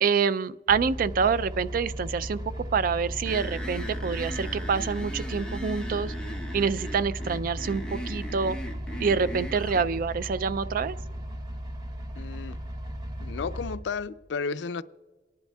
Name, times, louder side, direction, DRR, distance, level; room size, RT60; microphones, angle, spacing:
voice 1, 0.0-6.1 6.5-8.6 9.0-11.0, right 5 dB, 50° right, 0.3 m, -27 dB
sound 1, 0.7-13.8, equal, 25° right, 0.8 m, -36 dB
sound 2, 3.3-9.9, equal, 5° left, 1.1 m, -39 dB
voice 2, 12.1-12.6 13.2-14.8, left 5 dB, 80° left, 0.4 m, -33 dB
28.0 x 10.5 x 2.3 m
head